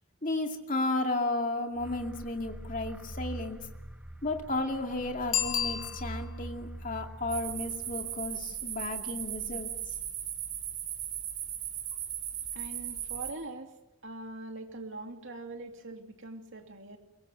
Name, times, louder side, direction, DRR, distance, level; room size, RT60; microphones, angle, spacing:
voice 1, 0.2-3.6 4.2-9.7, left 2 dB, 40° left, 3 dB, 2.4 m, -33 dB
sound 1, 1.8-8.3, right 1 dB, 5° right, 1.2 m, -43 dB
Bicycle bell, 5.3-6.5 11.9-12.0, left 10 dB, 70° left, 3.2 m, -31 dB
sound 2, 7.3-13.3, right 10 dB, 80° right, 5.5 m, -37 dB
voice 2, 12.5-13.7 14.0-17.0, right 2 dB, 60° right, 4 dB, 2.8 m, -42 dB
24.0 x 23.0 x 7.8 m, 0.95 s
head